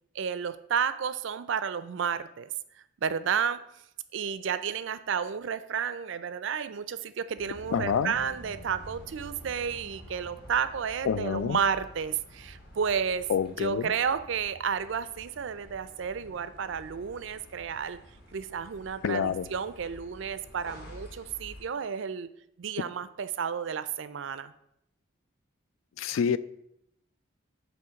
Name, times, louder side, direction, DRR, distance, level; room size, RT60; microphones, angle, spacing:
voice 1, 0.1-2.5 3.0-3.6 4.1-13.3 13.6-18.0 18.3-22.3 22.6-24.5, right 7 dB, 65° right, 0.4 m, -31 dB
sound 1, 7.4-21.6, equal, 45° left, 1.5 m, -49 dB
voice 2, 7.7-8.1 11.1-11.6 13.3-13.9 19.0-19.5 26.0-26.4, left 7 dB, 75° left, 0.3 m, -27 dB
7.9 x 3.1 x 5.7 m
head